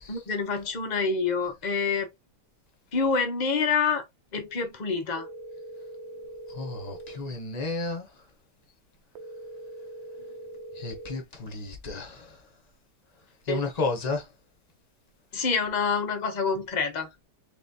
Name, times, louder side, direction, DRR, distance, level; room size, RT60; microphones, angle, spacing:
voice 1, 0.1-2.1 2.9-4.0 4.3-5.3 13.5-13.6 15.3-17.1, left 5 dB, 60° left, 0.4 m, -27 dB
sound 1, 5.2-7.2 9.2-11.2, right 2 dB, 80° right, 1.4 m, -42 dB
voice 2, 6.5-8.1 10.8-12.3 13.5-14.2, left 3 dB, 30° left, 0.9 m, -32 dB
4.1 x 3.4 x 2.7 m
omnidirectional pair, 2.1 m